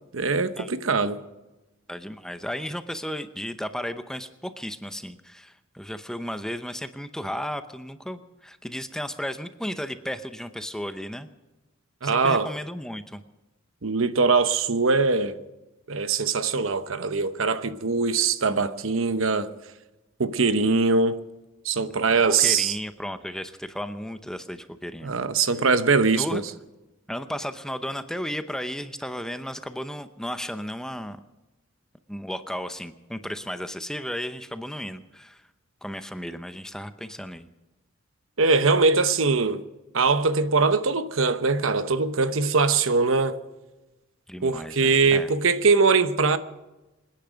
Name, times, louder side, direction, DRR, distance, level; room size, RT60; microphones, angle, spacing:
voice 1, 0.1-1.2 12.0-12.5 13.8-15.4 15.9-19.5 20.2-21.2 21.6-22.8 25.0-26.4 38.4-39.6 39.9-43.4 44.4-46.4, right 4 dB, 75° right, 1.0 m, -22 dB
voice 2, 1.9-11.3 12.0-13.2 22.2-25.1 26.1-26.4 27.1-31.2 32.1-35.4 35.8-37.5 44.3-45.3, equal, 5° left, 0.7 m, -34 dB
25.5 x 10.5 x 5.2 m
head